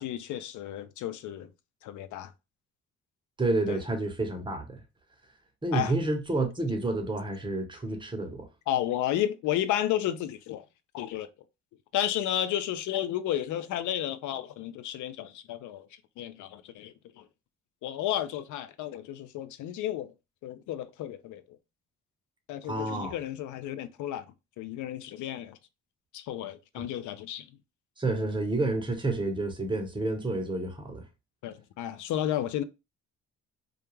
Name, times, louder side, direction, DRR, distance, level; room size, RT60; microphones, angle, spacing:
voice 1, 0.0-1.5 1.8-2.3 3.7-3.8 5.7-5.9 8.7-10.6 10.9-11.3 11.9-15.9 16.2-17.3 17.8-20.1 20.4-21.4 22.5-24.3 24.6-25.6 26.1-27.5 31.4-32.6, left 11 dB, 75° left, 0.4 m, -32 dB
voice 2, 3.4-4.8 5.6-8.5 22.7-23.1 26.8-26.9 28.0-31.0, right 2 dB, 15° right, 0.8 m, -29 dB
2.4 x 2.2 x 3.0 m
cardioid pair, 90°, 30 cm